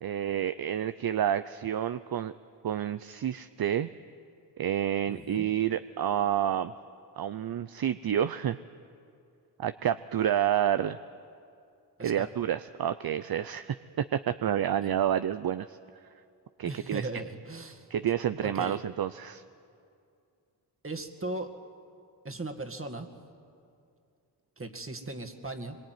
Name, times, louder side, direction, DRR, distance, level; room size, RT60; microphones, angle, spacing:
voice 1, 0.0-2.3 2.6-3.9 4.6-6.7 7.2-8.6 9.6-11.0 12.0-15.8 16.6-17.1 17.9-19.4, right 10 dB, 55° right, 12 dB, 0.6 m, -29 dB
voice 2, 5.1-5.5 12.0-12.3 14.8-14.9 16.6-17.9 18.4-18.8 20.8-21.5 22.2-23.1 24.6-25.8, right 2 dB, 30° right, 4 dB, 2.2 m, -38 dB
24.0 x 23.0 x 9.5 m, 2.5 s
cardioid pair, 75°, 42 cm